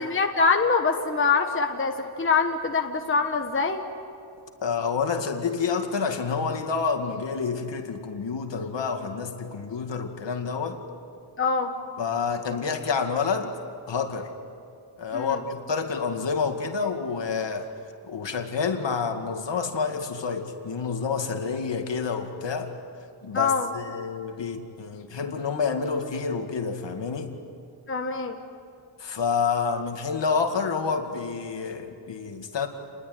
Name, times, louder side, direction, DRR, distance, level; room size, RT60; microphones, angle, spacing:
voice 1, 0.0-3.8 11.4-11.7 15.1-15.4 23.3-23.7 27.9-28.4, left 4 dB, 25° left, 4 dB, 1.3 m, -24 dB
voice 2, 4.6-10.8 12.0-13.5 13.9-14.3 15.0-17.7 18.0-22.7 23.2-27.4 29.0-32.7, left 5 dB, 65° left, 5 dB, 2.3 m, -28 dB
29.0 x 21.0 x 9.6 m, 2.5 s
wide cardioid pair, 165°, 47 cm